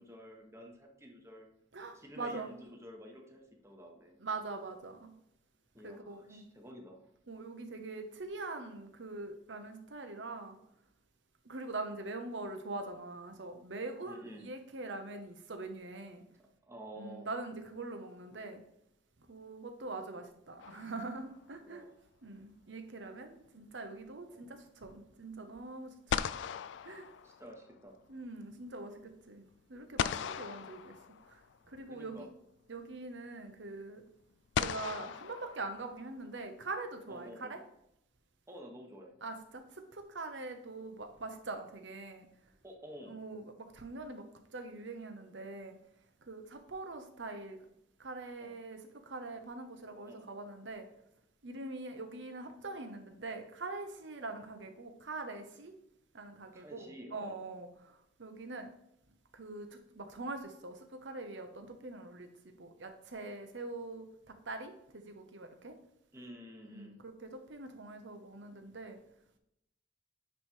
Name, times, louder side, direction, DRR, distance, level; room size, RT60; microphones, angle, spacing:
voice 1, 0.0-1.5 1.9-4.2 5.7-7.1 14.0-14.5 16.7-17.3 21.6-22.0 24.3-24.5 27.2-28.0 31.9-32.3 37.1-37.6 38.5-39.1 42.6-43.2 48.4-48.6 50.0-50.3 54.2-54.3 56.5-57.4 66.1-67.0, equal, 15° right, 1 dB, 1.2 m, -51 dB
voice 2, 1.7-2.5 4.2-5.1 5.8-6.4 7.3-10.6 11.4-16.2 16.9-18.6 19.3-21.8 22.2-26.3 26.8-27.1 28.1-29.4 29.7-30.9 31.3-31.4 31.7-32.3 32.7-34.0 34.6-37.6 39.2-42.3 43.1-44.2 44.5-45.8 46.3-47.6 48.0-48.8 49.1-50.9 51.4-55.7 56.1-57.9 58.2-58.7 59.3-65.8 66.7-69.0, right 3 dB, 75° right, 6 dB, 1.0 m, -43 dB
sound 1, 20.6-21.5 25.6-25.7 26.1-27.8 30.0-31.6 32.9-33.0 34.5-36.2, left 8 dB, 70° left, 0.3 m, -38 dB
9.5 x 3.3 x 4.5 m, 0.77 s
head